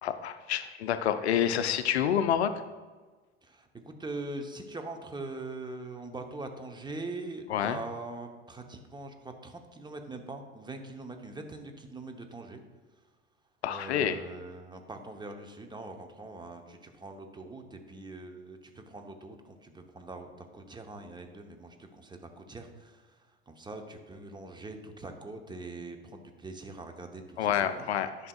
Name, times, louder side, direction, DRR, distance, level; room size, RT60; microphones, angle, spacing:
voice 1, 0.0-2.5 7.5-7.8 13.6-14.2 27.4-28.3, left 9 dB, 75° left, 11 dB, 0.5 m, -28 dB
voice 2, 3.4-12.6 13.7-23.2 23.5-27.9, right 2 dB, 15° right, 5 dB, 0.9 m, -42 dB
11.0 x 5.7 x 2.3 m, 1.4 s
figure-of-eight pair, 70°, 33 cm